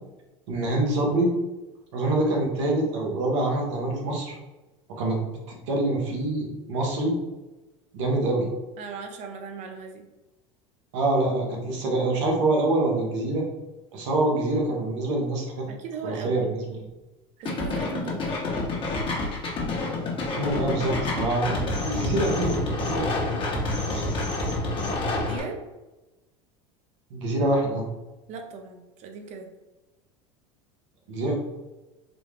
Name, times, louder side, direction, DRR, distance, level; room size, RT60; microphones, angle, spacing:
voice 1, 0.5-1.3 1.9-4.4 4.9-5.2 5.5-7.2 7.9-8.5 10.9-13.4 13.9-15.7 16.0-16.5 20.3-24.1 27.1-27.9 31.1-31.3, right 2 dB, 75° right, 0 dB, 1.1 m, -25 dB
voice 2, 8.3-10.1 15.7-16.6 17.4-18.4 25.1-25.6 28.3-29.5, right 5 dB, 50° right, 4 dB, 0.7 m, -38 dB
sound 1, 17.4-25.4, left 2 dB, 35° left, 1.1 m, -28 dB
4.0 x 2.3 x 3.4 m, 1.1 s
hypercardioid pair, 100°, 15 cm